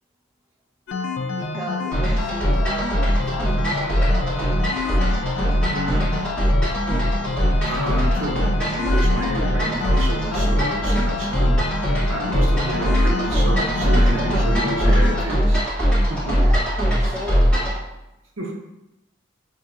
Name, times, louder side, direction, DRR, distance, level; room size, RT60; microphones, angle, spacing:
sound 1, 0.9-15.3, left 3 dB, 75° left, 0.3 m, -28 dB
voice 1, 1.3-4.6 16.4-16.6 17.0-17.7, equal, 15° right, -1 dB, 0.3 m, -36 dB
sound 2, 1.9-17.8, equal, 5° left, 1.1 m, -20 dB
voice 2, 5.7-6.4 7.7-11.8 12.1-15.6 16.1-16.4 18.4-18.6, right 1 dB, 85° right, 0 dB, 0.7 m, -29 dB
4.6 x 2.7 x 2.4 m, 0.93 s
head